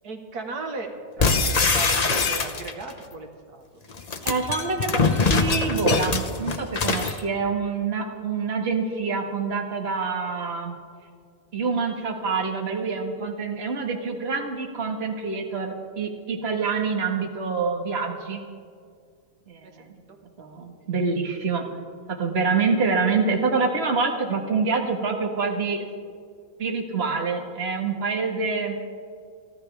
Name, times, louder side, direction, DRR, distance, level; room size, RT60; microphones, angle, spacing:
voice 1, 0.0-0.9 1.2-3.6 19.6-19.9, right 3 dB, 85° right, 4 dB, 1.9 m, -36 dB
sound 1, 1.2-2.9 3.9-7.2, left 4 dB, 35° left, 0.7 m, -23 dB
voice 2, 4.2-10.8 11.5-18.4 19.5-19.9 20.4-21.6 22.1-25.8 26.6-28.7, right 4 dB, 45° right, 2 dB, 1.8 m, -26 dB
29.5 x 12.0 x 3.5 m, 2.1 s
omnidirectional pair, 1.6 m